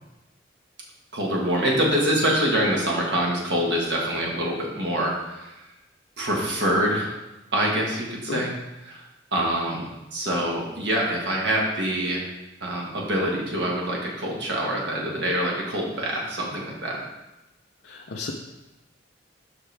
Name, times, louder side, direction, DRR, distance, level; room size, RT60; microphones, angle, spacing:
voice 1, 1.1-5.5 6.2-7.1 7.5-8.5 8.9-9.0 9.3-12.2 12.6-17.0, right 1 dB, 65° right, -2 dB, 1.5 m, -25 dB
voice 2, 17.8-18.3, left 3 dB, 60° left, -1 dB, 0.6 m, -32 dB
7.3 x 5.8 x 3.4 m, 1.0 s
head